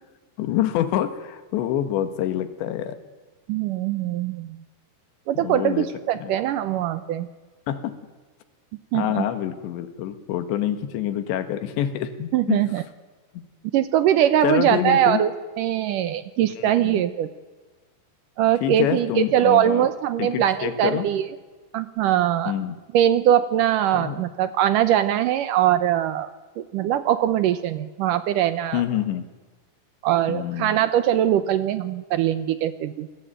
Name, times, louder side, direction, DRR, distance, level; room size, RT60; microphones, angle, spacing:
voice 1, 0.4-3.0 5.4-5.9 6.2-6.3 7.7-8.0 8.9-12.6 13.3-13.4 14.4-15.2 16.6-17.0 18.6-19.9 20.2-21.1 22.5-22.8 23.9-24.2 28.7-29.3 30.3-30.8, left 11 dB, 90° left, 10 dB, 3.8 m, -26 dB
voice 2, 3.5-4.6 5.3-7.3 8.9-9.2 12.3-12.8 13.7-15.3 15.6-17.3 18.4-21.2 21.7-22.5 22.9-28.8 30.0-33.1, right 11 dB, 80° right, 12 dB, 1.9 m, -22 dB
28.0 x 18.5 x 9.2 m, 1.3 s
omnidirectional pair, 5.0 m